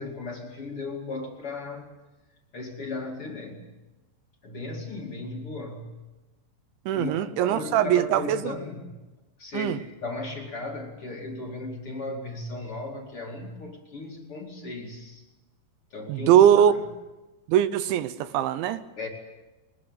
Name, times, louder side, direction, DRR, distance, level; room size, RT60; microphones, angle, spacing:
voice 1, 0.0-1.9 2.5-3.7 4.4-6.0 6.9-8.9 9.4-15.3 15.9-16.8 19.0-19.1, left 3 dB, 35° left, 0 dB, 2.9 m, -36 dB
voice 2, 6.9-8.4 9.5-9.8 16.1-16.7 17.5-18.8, right 10 dB, 80° right, 13 dB, 3.2 m, -21 dB
22.0 x 21.0 x 8.1 m, 1.1 s
omnidirectional pair, 5.3 m